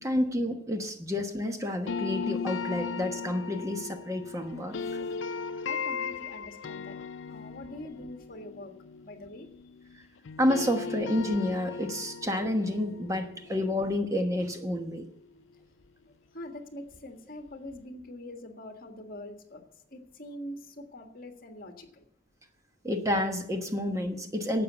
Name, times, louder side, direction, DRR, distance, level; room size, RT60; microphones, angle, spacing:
voice 1, 0.0-5.0 10.4-15.0 22.8-24.6, left 1 dB, 15° right, 5 dB, 1.1 m, -29 dB
sound 1, 1.9-9.9 10.2-15.2, left 5 dB, 80° left, 0.5 m, -37 dB
voice 2, 5.6-7.0 7.3-8.7 9.0-9.5 16.3-19.6 19.9-22.1, left 1 dB, 50° left, 5 dB, 1.8 m, -44 dB
12.0 x 8.4 x 8.1 m, 0.76 s
head